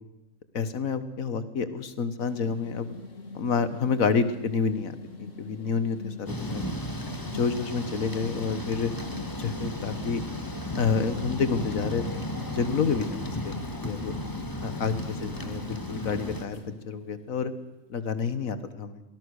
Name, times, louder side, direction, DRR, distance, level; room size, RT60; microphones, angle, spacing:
voice 1, 0.5-3.0 3.3-6.7 7.3-8.9 9.3-10.2 10.8-13.6 13.8-14.1 14.6-16.6 16.9-17.5 17.9-19.0, left 5 dB, 80° left, 12 dB, 1.8 m, -29 dB
sound 1, 2.2-17.5, left 2 dB, 65° left, 2.6 m, -43 dB
Thunder / Rain, 6.3-16.4, left 1 dB, 15° left, 1.7 m, -35 dB
23.5 x 19.0 x 6.5 m, 0.92 s
omnidirectional pair, 1.4 m